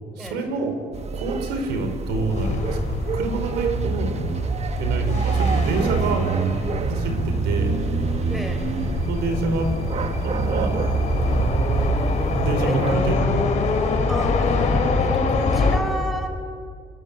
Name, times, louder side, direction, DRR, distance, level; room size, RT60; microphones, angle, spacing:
voice 1, 0.2-0.7 1.1-4.2 4.8-6.3 6.8-7.8 9.1-9.7 10.2-10.8 12.4-13.4, right 3 dB, 85° right, 6 dB, 4.9 m, -27 dB
sound 1, 0.9-13.0, right 6 dB, 40° right, 1.2 m, -26 dB
sound 2, 2.1-15.8, left 3 dB, 45° left, 5.1 m, -25 dB
voice 2, 8.3-8.6 12.6-13.6 14.1-16.3, equal, ahead, 6 dB, 4.4 m, -32 dB
29.0 x 20.0 x 8.9 m, 2.1 s
cardioid pair, 110°, 17 cm